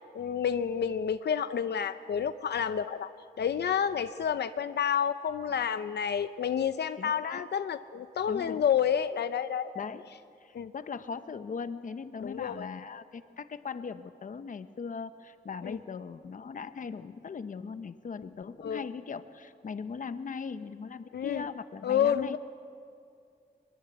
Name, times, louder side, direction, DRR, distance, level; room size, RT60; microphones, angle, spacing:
voice 1, 0.1-3.1 3.4-9.9 10.5-10.7 12.2-12.7 15.6-15.8 18.6-18.8 21.1-21.4 21.8-22.4, left 8 dB, 85° left, 11 dB, 0.6 m, -29 dB
voice 2, 7.0-7.5 8.3-8.6 9.7-10.1 10.4-22.4, left 5 dB, 50° left, 11 dB, 0.9 m, -39 dB
23.5 x 22.0 x 8.1 m, 2.4 s
wide cardioid pair, 165°, 17 cm